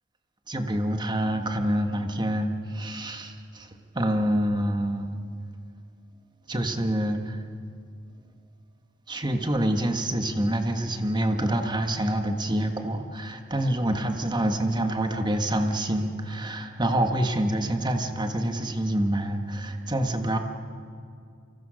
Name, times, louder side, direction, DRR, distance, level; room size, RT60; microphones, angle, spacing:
voice 1, 0.5-5.2 6.5-7.4 9.1-20.4, right 1 dB, 20° right, 5 dB, 1.6 m, -27 dB
29.5 x 24.5 x 6.5 m, 2.3 s
head